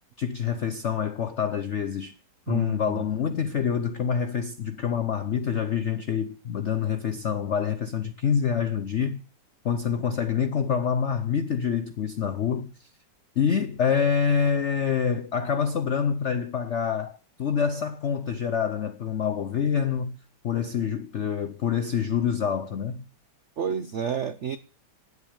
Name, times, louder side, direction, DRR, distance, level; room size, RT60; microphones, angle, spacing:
voice 1, 0.2-2.1 2.5-9.2 9.6-12.7 13.4-20.2 20.4-23.1, left 7 dB, 75° left, 0.6 m, -26 dB
voice 2, 2.5-3.0 23.6-24.6, right 7 dB, 80° right, 0.6 m, -30 dB
9.4 x 8.3 x 8.6 m
omnidirectional pair, 2.1 m